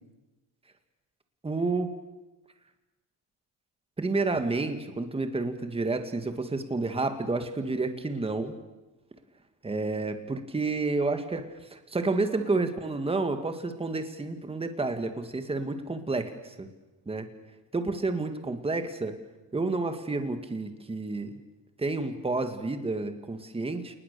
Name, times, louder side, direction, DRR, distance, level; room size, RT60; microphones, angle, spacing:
voice 1, 1.4-1.9 4.0-8.5 9.6-16.7 17.1-17.3 17.7-19.2 19.5-21.3 21.8-24.0, right 3 dB, 15° right, 7 dB, 1.9 m, -30 dB
28.5 x 20.0 x 6.9 m, 1.1 s
cardioid pair, 140°, 43 cm